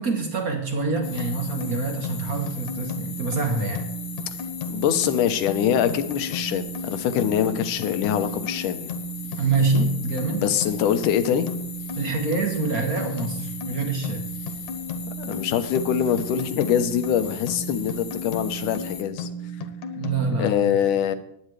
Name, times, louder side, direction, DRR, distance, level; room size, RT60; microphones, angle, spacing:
voice 1, 0.0-3.9 9.4-10.5 11.9-14.3 20.0-20.8, right 3 dB, 80° right, 4 dB, 0.8 m, -26 dB
sound 1, 1.0-20.5, equal, 75° left, 2.4 m, -34 dB
sound 2, 1.0-19.0, left 7 dB, 55° left, 1.6 m, -39 dB
voice 2, 4.7-8.9 10.4-11.5 15.2-19.3 20.4-21.2, left 9 dB, 90° left, 9 dB, 2.5 m, -24 dB
19.5 x 9.3 x 3.3 m, 0.75 s
omnidirectional pair, 3.5 m